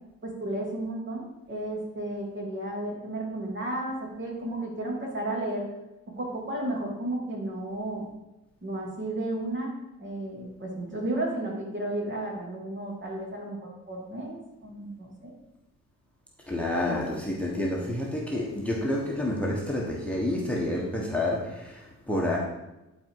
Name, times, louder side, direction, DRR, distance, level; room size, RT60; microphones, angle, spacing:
voice 1, 0.2-5.7 6.2-8.0 8.6-15.3, right 1 dB, 40° right, -1 dB, 2.8 m, -33 dB
voice 2, 16.5-22.4, left 1 dB, 5° left, -2 dB, 1.4 m, -29 dB
10.5 x 4.4 x 4.8 m, 0.97 s
cardioid pair, 90°, 30 cm